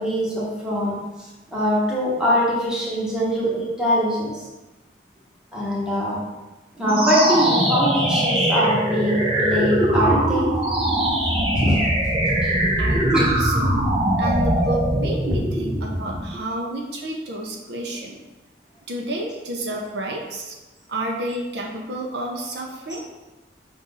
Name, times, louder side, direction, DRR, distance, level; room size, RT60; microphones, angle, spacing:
voice 1, 0.0-4.4 5.5-6.2 6.8-10.5 11.5-11.8 12.4-12.6 13.1-13.2, equal, 5° right, -7 dB, 1.0 m, -23 dB
sound 1, 6.8-16.3, right 1 dB, 30° right, 0.5 m, -21 dB
voice 2, 12.7-13.7 14.2-18.2 18.9-20.6 20.9-23.0, right 1 dB, 70° right, 0 dB, 0.6 m, -30 dB
5.3 x 2.5 x 3.9 m, 1.1 s
head